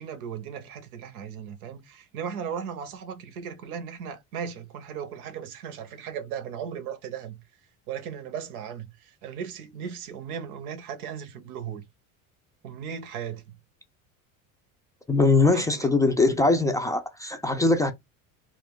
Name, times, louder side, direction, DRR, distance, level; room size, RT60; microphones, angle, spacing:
voice 1, 0.0-7.4 7.9-11.8 12.6-13.6 15.5-15.9, right 7 dB, 90° right, 0.7 m, -37 dB
voice 2, 15.1-17.9, left 3 dB, 10° left, 0.4 m, -21 dB
2.5 x 2.1 x 3.5 m
hypercardioid pair, 85°, 42 cm